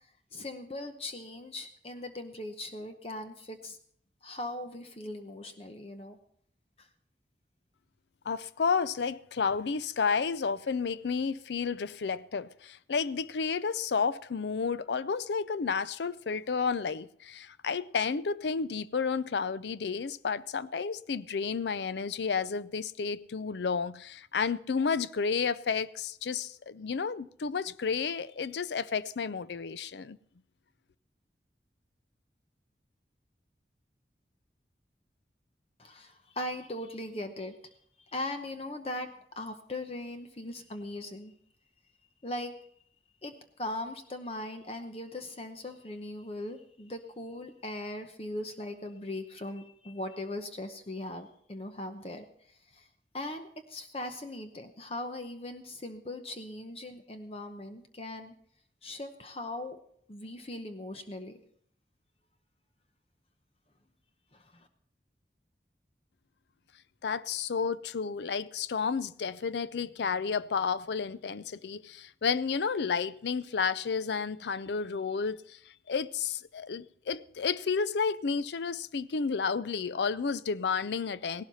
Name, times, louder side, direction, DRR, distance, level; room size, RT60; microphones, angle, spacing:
voice 1, 0.3-3.8 4.2-6.2 6.8-6.9 35.8-37.6 38.1-39.1 39.4-41.3 42.2-42.7 43.2-52.9 53.1-58.3 58.8-59.8 60.1-61.4 64.3-64.7, left 1 dB, 35° left, 0.8 m, -39 dB
voice 2, 8.3-30.2 67.0-75.6 75.9-81.4, left 5 dB, 80° left, 0.5 m, -31 dB
16.5 x 12.0 x 4.1 m
head